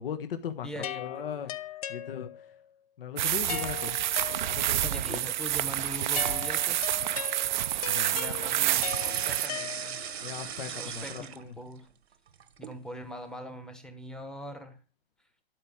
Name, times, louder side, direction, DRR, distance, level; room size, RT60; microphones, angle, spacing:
voice 1, 0.0-0.7 0.9-1.5 1.9-2.5 3.0-4.0 4.5-5.2 7.9-8.2 10.2-11.5, left 8 dB, 60° left, 1.3 m, -38 dB
voice 2, 0.6-1.3 4.8-6.8 8.1-10.1 10.6-11.9 12.6-14.8, equal, ahead, 1.1 m, -42 dB
sound 1, 0.8-2.6 3.5-4.9 6.1-10.3, left 11 dB, 40° left, 0.7 m, -39 dB
sound 2, 3.2-9.5, right 12 dB, 50° right, 0.5 m, -28 dB
sound 3, 8.5-11.8 12.1-12.8, right 8 dB, 80° right, 1.2 m, -38 dB
12.0 x 4.8 x 7.7 m
hypercardioid pair, 150°, 31 cm